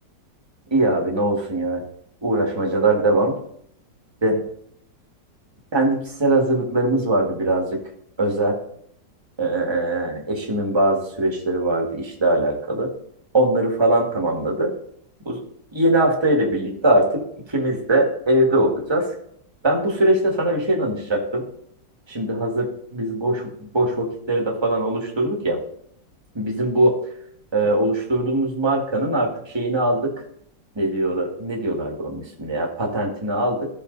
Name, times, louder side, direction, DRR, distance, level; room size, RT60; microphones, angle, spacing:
voice 1, 0.7-1.8 2.2-3.3 4.2-4.4 5.7-7.8 8.2-8.6 9.4-12.9 13.3-14.7 15.3-15.4 15.7-17.2 17.5-19.1 19.6-21.4 22.1-25.6 26.3-27.0 27.5-30.1 30.8-33.7, right 1 dB, 15° right, 0 dB, 1.9 m, -21 dB
14.5 x 6.7 x 4.0 m, 0.68 s
omnidirectional pair, 2.0 m